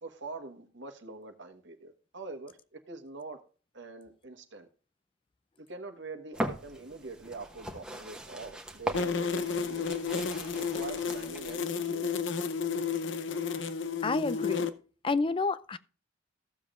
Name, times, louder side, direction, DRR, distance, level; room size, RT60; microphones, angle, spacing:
voice 1, 0.0-3.4 3.7-4.7 5.6-9.9 10.4-12.2, right 3 dB, 60° right, 1.3 m, -44 dB
sound 1, 6.3-11.5, equal, 5° right, 1.2 m, -39 dB
sound 2, 8.9-14.7, left 5 dB, 70° left, 0.7 m, -32 dB
voice 2, 14.0-14.7 15.0-15.8, left 3 dB, 25° left, 0.4 m, -29 dB
15.0 x 7.2 x 2.4 m
head